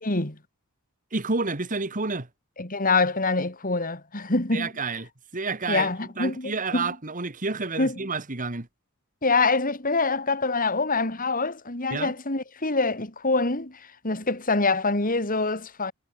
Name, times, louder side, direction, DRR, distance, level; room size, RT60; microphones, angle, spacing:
voice 1, 0.0-0.4 2.6-4.7 5.7-6.9 7.8-8.0 9.2-15.9, left 3 dB, 40° left, 3.6 m, -25 dB
voice 2, 1.1-2.3 4.5-8.7 11.9-12.1, right 3 dB, 40° right, 1.8 m, -30 dB
head